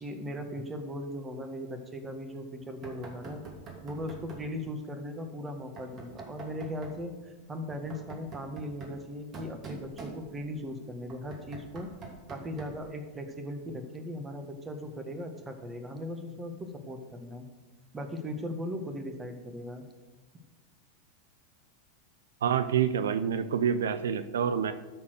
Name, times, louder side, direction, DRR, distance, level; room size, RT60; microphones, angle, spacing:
voice 1, 0.0-3.4 3.8-11.9 12.3-17.5 17.9-19.8, equal, 20° right, 6 dB, 1.5 m, -38 dB
Knock, 2.8-4.5 5.8-7.0 7.7-10.6 11.1-12.9, right 4 dB, 35° right, 2.7 m, -46 dB
voice 2, 22.4-24.7, right 8 dB, 75° right, 12 dB, 0.5 m, -27 dB
12.5 x 4.4 x 6.4 m, 1.2 s
hypercardioid pair, 95°, 0 cm